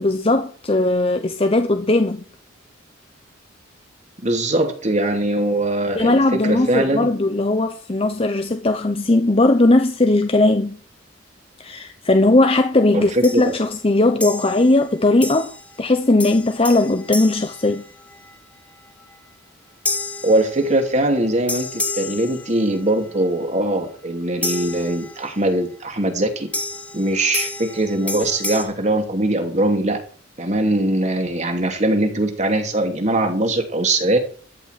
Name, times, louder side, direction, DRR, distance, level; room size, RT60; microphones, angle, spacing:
voice 1, 0.0-2.2 6.0-10.8 11.6-15.5 15.8-17.8, left 2 dB, 30° left, 0.9 m, -18 dB
voice 2, 4.2-7.1 12.9-13.5 20.2-26.5 26.9-30.0 30.4-34.2, right 1 dB, 35° right, 2.9 m, -21 dB
sound 1, 13.2-13.6 14.2-14.8 15.2-15.8 16.2-18.3 19.9-21.0 21.5-22.9 24.4-25.5 26.5-28.6, left 2 dB, 5° left, 2.6 m, -30 dB
14.0 x 6.0 x 9.2 m
head